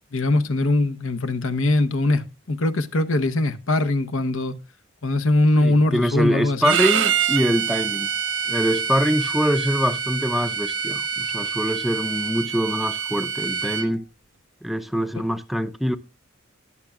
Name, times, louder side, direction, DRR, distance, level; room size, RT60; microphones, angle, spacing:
voice 1, 0.1-4.5 5.0-6.8, left 2 dB, 85° left, 1.0 m, -21 dB
voice 2, 5.6-8.1 8.5-14.1 14.6-16.0, equal, ahead, 0.5 m, -24 dB
Bowed string instrument, 6.6-13.9, right 7 dB, 75° right, 1.1 m, -26 dB
20.5 x 7.0 x 2.4 m
head